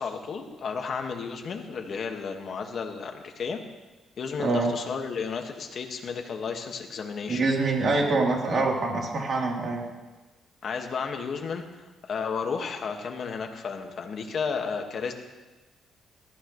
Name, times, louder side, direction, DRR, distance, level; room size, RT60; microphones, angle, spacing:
voice 1, 0.0-3.6 4.2-7.5 10.6-15.1, left 5 dB, 55° left, 3 dB, 1.8 m, -33 dB
voice 2, 4.4-4.7 7.3-9.8, right 3 dB, 50° right, -2 dB, 3.6 m, -25 dB
19.0 x 14.0 x 3.3 m, 1.2 s
cardioid pair, 100°, 0 cm